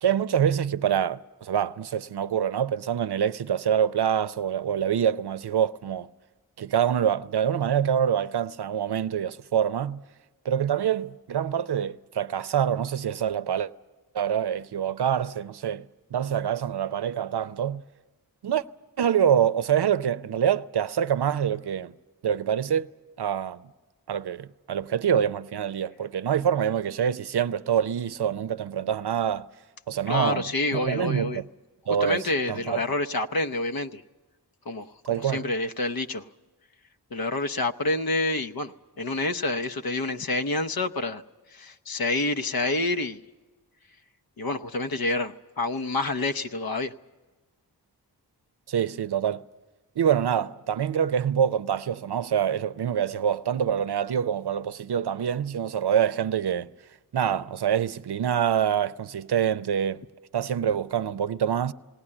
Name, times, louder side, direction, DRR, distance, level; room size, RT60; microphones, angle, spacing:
voice 1, 0.0-6.1 6.6-10.0 10.4-13.7 14.1-17.8 18.4-18.6 19.0-21.9 22.2-22.9 23.2-23.6 24.1-29.5 29.9-31.4 31.9-32.8 35.1-35.5 48.7-49.4 50.0-56.7 57.1-60.0 60.3-61.7, right 9 dB, 70° right, 0.6 m, -26 dB
voice 2, 30.1-31.4 32.0-34.0 34.7-36.3 37.1-41.2 41.5-43.2 44.4-46.9, left 2 dB, 60° left, 0.9 m, -28 dB
19.5 x 18.0 x 9.9 m
wide cardioid pair, 85°, 40 cm